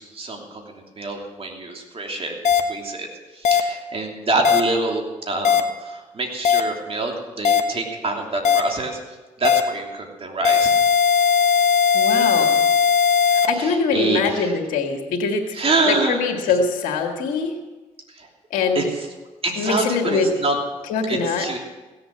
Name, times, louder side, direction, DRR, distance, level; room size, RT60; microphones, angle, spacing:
voice 1, 0.0-3.1 3.3-9.0 9.4-10.7 13.5-14.5 15.5-16.2 18.1-18.3 18.7-18.8 19.4-20.5 21.1-21.6, right 2 dB, 45° right, 1 dB, 3.0 m, -26 dB
sound 1, 2.4-2.6 3.4-3.6 4.4-4.6 5.4-5.6 6.4-6.6 7.4-7.6 8.4-8.6 9.4-9.6 10.4-13.5, left 7 dB, 60° left, 1.1 m, -17 dB
voice 2, 11.9-12.6 13.3-15.4 15.9-17.5 18.5-18.8 19.6-20.3 20.9-21.5, left 5 dB, 90° left, 3 dB, 1.9 m, -23 dB
16.5 x 7.8 x 7.6 m, 1.2 s
supercardioid pair, 60°, 13 cm